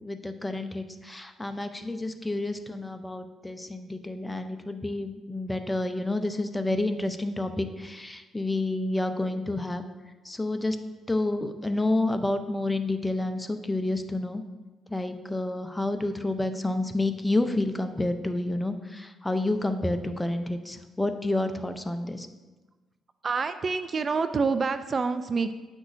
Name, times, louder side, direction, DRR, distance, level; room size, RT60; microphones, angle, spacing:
voice 1, 0.0-9.8 10.2-10.8 11.1-14.4 14.9-22.3, left 2 dB, 10° left, 7 dB, 0.6 m, -29 dB
voice 2, 23.2-25.5, right 4 dB, 40° right, 11 dB, 0.3 m, -27 dB
9.1 x 6.0 x 2.6 m, 1.2 s
cardioid pair, 90°, 0 cm